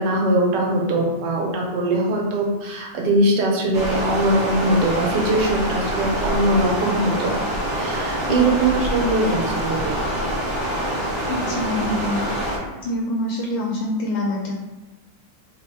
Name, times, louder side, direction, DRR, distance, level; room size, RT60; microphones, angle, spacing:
voice 1, 0.0-7.4 7.7-10.0, right 1 dB, 75° right, -1 dB, 1.2 m, -21 dB
Stream, 3.7-12.6, equal, 40° right, 0.9 m, -25 dB
voice 2, 11.3-12.3 12.6-14.5, left 1 dB, 85° left, -2 dB, 1.3 m, -25 dB
3.5 x 2.1 x 4.0 m, 1.2 s
omnidirectional pair, 2.0 m